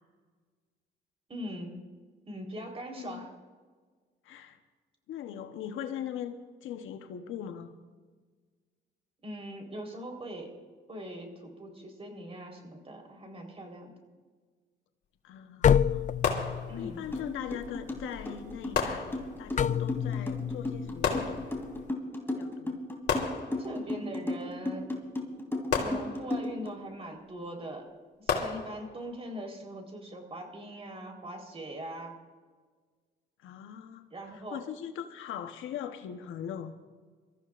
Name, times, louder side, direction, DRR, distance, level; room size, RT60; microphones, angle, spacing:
voice 1, 1.3-1.7 2.3-3.3 9.2-10.5 10.9-13.9 16.7-17.0 23.6-24.9 25.8-27.9 28.2-32.1 34.1-34.6, right 1 dB, 30° right, 2 dB, 3.9 m, -41 dB
voice 2, 2.9-3.3 4.2-4.6 5.1-6.3 6.6-7.7 15.2-16.1 16.8-21.5 22.3-22.8 33.4-36.7, left 9 dB, 85° left, 7 dB, 1.0 m, -40 dB
office insidewatercooler, 15.6-21.9, left 8 dB, 40° left, 0.4 m, -30 dB
sound 1, 16.2-17.2 18.7-19.6 21.0-21.9 23.1-24.0 25.7-26.6 28.3-29.2, left 6 dB, 55° left, 2.6 m, -33 dB
sound 2, 17.1-17.2 17.5-26.7, left 1 dB, 10° left, 2.9 m, -34 dB
26.5 x 14.5 x 2.5 m, 1.5 s
cardioid pair, 90°, 20 cm